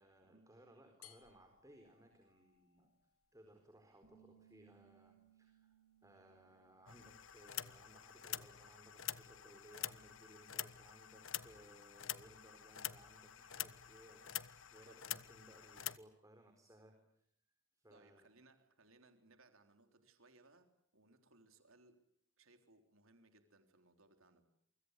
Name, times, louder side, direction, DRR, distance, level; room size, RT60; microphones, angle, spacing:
voice 1, 0.0-2.9 3.3-17.2 17.7-18.3, right 1 dB, 15° right, 5 dB, 4.3 m, -63 dB
sound 1, 1.0-8.0, left 10 dB, 85° left, 4.5 m, -70 dB
Bass guitar, 4.0-10.3, right 9 dB, 50° right, 6.6 m, -72 dB
sound 2, 6.9-16.0, left 12 dB, 65° left, 1.2 m, -47 dB
voice 2, 17.9-22.0 22.4-24.4, right 2 dB, 70° right, 7 dB, 3.7 m, -67 dB
29.0 x 25.0 x 8.2 m, 0.72 s
head